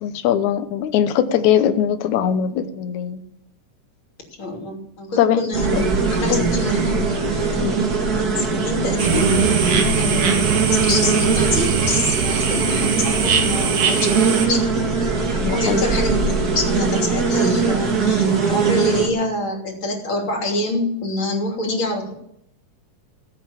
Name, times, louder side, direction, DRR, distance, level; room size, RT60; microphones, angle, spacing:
voice 1, 0.0-3.2 5.2-5.4 6.3-6.5 9.7-10.0 15.4-15.9, left 9 dB, 70° left, 9 dB, 2.3 m, -20 dB
voice 2, 4.4-5.8 6.1-9.6 10.0-14.6 15.5-22.1, left 2 dB, 40° left, 0 dB, 3.6 m, -26 dB
sound 1, 5.5-19.1, right 4 dB, 35° right, 1.8 m, -21 dB
sound 2, 9.0-14.5, right 6 dB, 65° right, 2.8 m, -22 dB
16.0 x 8.4 x 7.2 m, 0.76 s
omnidirectional pair, 3.6 m